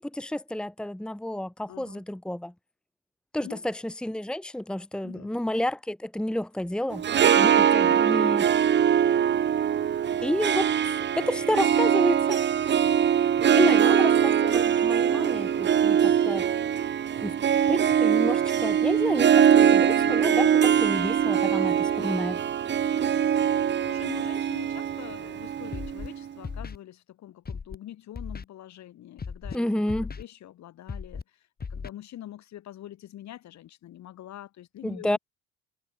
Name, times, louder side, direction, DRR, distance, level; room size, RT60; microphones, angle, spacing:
voice 1, 0.0-2.5 3.3-7.0 7.3-8.5 10.2-12.4 13.6-16.5 17.2-17.4 17.7-22.4 29.5-30.1 34.8-35.2, left 1 dB, 5° left, 1.5 m, -30 dB
voice 2, 1.7-2.0 3.4-3.7 5.0-5.3 7.8-8.1 13.5-14.1 22.0-22.6 23.8-29.9 30.2-35.2, left 12 dB, 60° left, 7.3 m, -45 dB
Harp, 6.9-26.3, right 9 dB, 35° right, 0.9 m, -22 dB
Scratching (performance technique), 25.7-26.1 26.4-26.8 27.4-27.8 28.1-28.4 29.2-29.6 29.9-30.2 30.9-31.2 31.6-31.9, left 5 dB, 30° left, 7.1 m, -36 dB
supercardioid pair, 85°, 31 cm